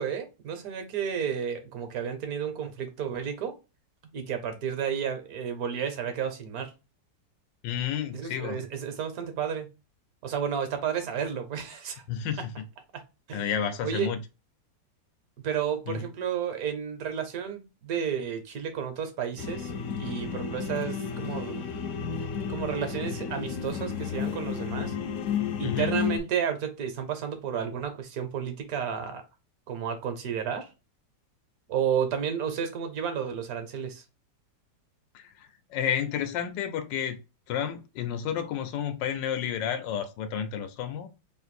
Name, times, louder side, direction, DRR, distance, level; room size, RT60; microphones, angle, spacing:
voice 1, 0.0-3.5 4.1-6.7 8.1-9.7 10.2-12.0 12.9-13.0 13.3-13.6 13.8-14.1 15.4-19.7 20.0-21.6 22.5-24.9 25.6-29.2 29.7-30.7 31.7-34.0, right 8 dB, 60° right, 1.2 m, -32 dB
voice 2, 7.6-8.6 12.1-12.4 13.3-14.2 15.9-16.0 25.6-26.0 35.1-37.2 37.5-41.1, left 8 dB, 85° left, 1.3 m, -31 dB
sound 1, 19.4-26.2, left 7 dB, 70° left, 0.7 m, -32 dB
3.2 x 2.5 x 4.1 m
omnidirectional pair, 1.9 m